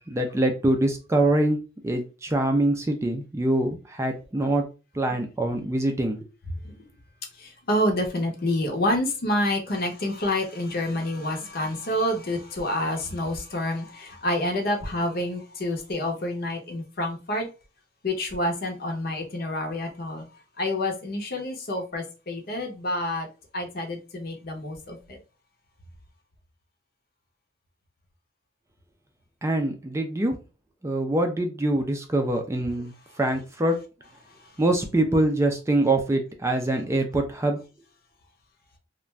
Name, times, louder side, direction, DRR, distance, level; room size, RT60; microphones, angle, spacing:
voice 1, 0.0-1.6 1.8-4.6 4.9-6.2 29.4-30.4 30.8-33.8 34.6-37.6, right 1 dB, 15° right, 0.4 m, -24 dB
voice 2, 7.3-17.5 18.0-23.3 23.5-25.2 34.3-34.6, left 1 dB, 55° left, 0.7 m, -28 dB
2.5 x 2.2 x 3.1 m
head